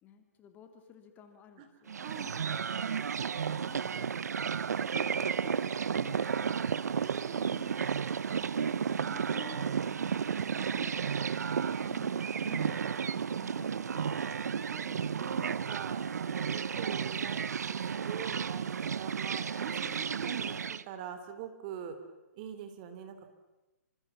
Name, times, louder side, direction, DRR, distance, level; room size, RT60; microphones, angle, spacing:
voice 1, 0.0-2.0 3.2-4.2 4.8-6.9 8.2-8.6 9.0-11.0 11.8-14.6, left 8 dB, 20° left, 6 dB, 2.7 m, -54 dB
voice 2, 1.9-2.4 6.9-7.7 10.5-11.0 13.7-22.0 22.3-23.3, right 8 dB, 30° right, 9 dB, 3.5 m, -44 dB
sound 1, 1.9-20.8, right 7 dB, 70° right, 1.0 m, -33 dB
28.0 x 26.5 x 7.2 m, 1.1 s
hypercardioid pair, 145°, 9 cm